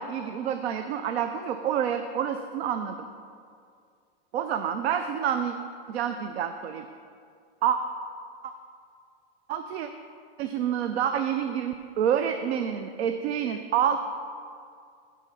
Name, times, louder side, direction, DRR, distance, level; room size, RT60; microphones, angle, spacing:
voice 1, 0.0-3.0 4.3-5.5 5.9-6.9 7.6-7.8 8.4-8.5 9.5-9.9 10.4-14.0, right 9 dB, 80° right, 8 dB, 0.5 m, -28 dB
9.0 x 3.7 x 5.6 m, 2.3 s
supercardioid pair, 175°, 31 cm